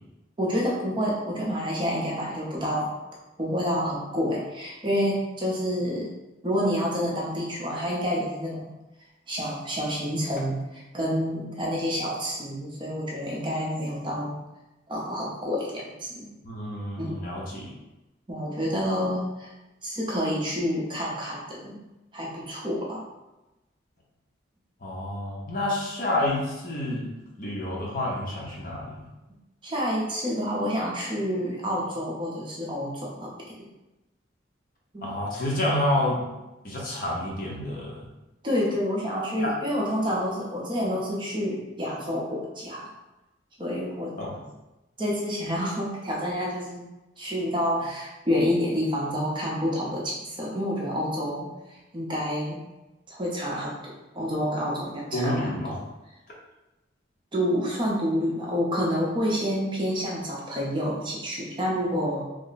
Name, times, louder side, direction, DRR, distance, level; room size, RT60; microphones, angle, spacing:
voice 1, 0.4-2.9 3.4-6.1 6.4-8.7 9.3-14.4 14.9-16.3 17.0-17.4 18.3-19.5 19.8-21.8 22.1-23.1 29.6-33.3 33.6-33.7 34.9-35.1 38.4-42.9 43.6-44.1 45.0-46.8 47.2-52.6 53.1-53.8 54.1-55.5 57.3-62.2, equal, 25° right, -4 dB, 0.6 m, -28 dB
voice 2, 16.4-17.7 24.8-27.1 27.4-29.1 35.0-36.2 36.6-38.1 39.4-39.5 44.2-44.4 55.1-55.8, left 1 dB, 45° left, -3 dB, 0.7 m, -29 dB
3.2 x 2.0 x 3.9 m, 1.0 s
head